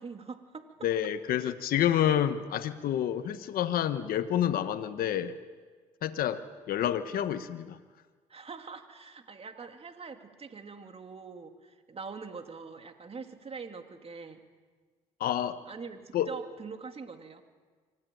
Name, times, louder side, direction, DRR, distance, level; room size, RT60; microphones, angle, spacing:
voice 1, 0.0-0.7 1.4-1.5 8.3-14.4 15.7-17.4, right 5 dB, 40° right, 6 dB, 2.7 m, -43 dB
voice 2, 0.8-5.3 6.0-6.4 6.7-7.8 15.2-15.6 16.1-16.3, left 10 dB, 75° left, 10 dB, 1.1 m, -28 dB
25.0 x 15.0 x 9.2 m, 1.5 s
supercardioid pair, 65°, 15 cm